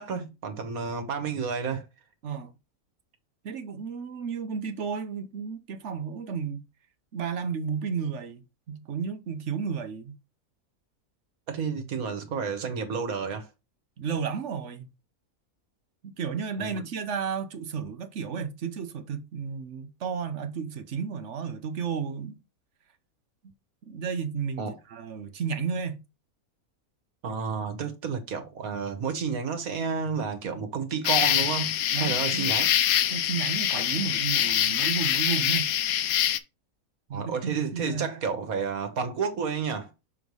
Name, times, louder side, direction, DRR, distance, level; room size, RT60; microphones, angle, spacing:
voice 1, 0.0-1.9 11.5-13.5 16.6-16.9 24.6-24.8 27.2-32.8 37.1-39.9, right 5 dB, 75° right, 1.7 m, -31 dB
voice 2, 3.4-6.6 7.1-10.2 14.0-14.9 16.0-22.4 23.8-26.0 28.1-28.2 31.9-32.5 33.1-35.7 37.1-38.1, right 6 dB, 60° right, 1.1 m, -33 dB
sound 1, 31.0-36.4, left 11 dB, 75° left, 1.1 m, -25 dB
6.2 x 3.2 x 5.3 m
omnidirectional pair, 1.5 m